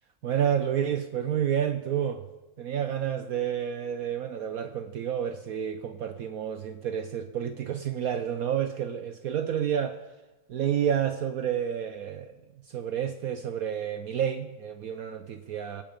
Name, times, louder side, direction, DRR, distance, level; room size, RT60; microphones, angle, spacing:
voice 1, 0.2-2.2 2.6-10.0 10.5-12.3 12.7-15.8, right 9 dB, 85° right, 8 dB, 0.7 m, -29 dB
23.5 x 8.9 x 5.1 m, 1.2 s
omnidirectional pair, 2.4 m